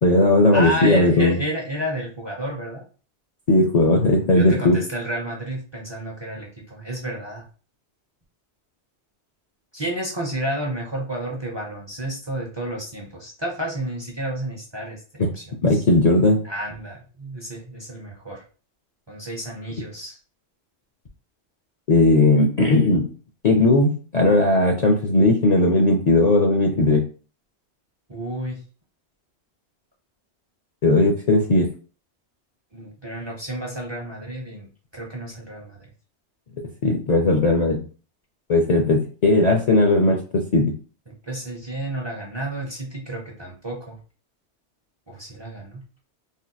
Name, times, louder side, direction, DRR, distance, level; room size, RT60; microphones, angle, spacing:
voice 1, 0.0-1.4 3.5-4.8 15.6-16.4 21.9-23.1 23.4-27.0 30.8-31.7 36.8-37.8 38.5-40.7, left 2 dB, 55° left, 1 dB, 0.5 m, -17 dB
voice 2, 0.5-2.8 4.3-7.5 9.7-15.8 16.4-18.4 19.1-20.2 28.1-28.6 32.7-35.9 41.1-44.0 45.1-45.8, right 1 dB, 30° right, -1 dB, 0.5 m, -31 dB
3.5 x 2.7 x 2.2 m, 0.37 s
omnidirectional pair, 1.2 m